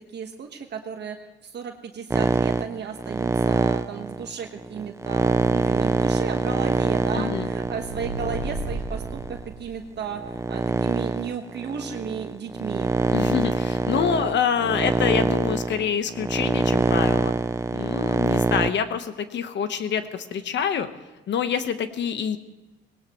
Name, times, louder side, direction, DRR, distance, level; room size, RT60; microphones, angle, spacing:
voice 1, 0.1-1.2 1.4-12.9, right 7 dB, 60° right, 4 dB, 1.4 m, -34 dB
sound 1, 2.1-9.5 10.1-18.7, right 3 dB, 15° right, 0.5 m, -24 dB
voice 2, 7.1-7.5 13.1-17.3 17.7-20.9 21.3-22.4, left 7 dB, 65° left, 10 dB, 1.2 m, -26 dB
sound 2, 7.5-10.1, right 2 dB, 80° right, 1.0 m, -34 dB
19.0 x 17.5 x 3.1 m, 1.1 s
cardioid pair, 90°, 20 cm